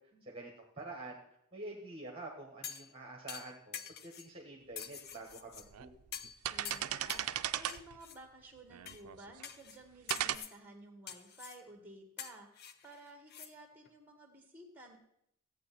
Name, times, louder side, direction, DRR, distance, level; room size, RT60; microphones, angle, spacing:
voice 1, 0.2-1.2 1.5-5.9, right 2 dB, 25° right, 0 dB, 1.4 m, -47 dB
sound 1, 2.6-2.9 3.3-4.3 4.8-5.7 6.1-6.4 6.7-7.3 7.7-8.2 8.9-9.0 9.4-9.8 10.1-10.6 11.1-11.6 12.2-13.5 13.9-14.0, left 8 dB, 45° left, 0.6 m, -46 dB
sound 2, 4.8-4.9 5.5-5.9 6.2-8.0 8.7-9.4 10.1-10.4, right 11 dB, 75° right, 0.5 m, -36 dB
voice 2, 6.5-15.0, right 1 dB, 10° right, 3 dB, 1.8 m, -54 dB
14.5 x 8.5 x 4.2 m, 0.74 s
head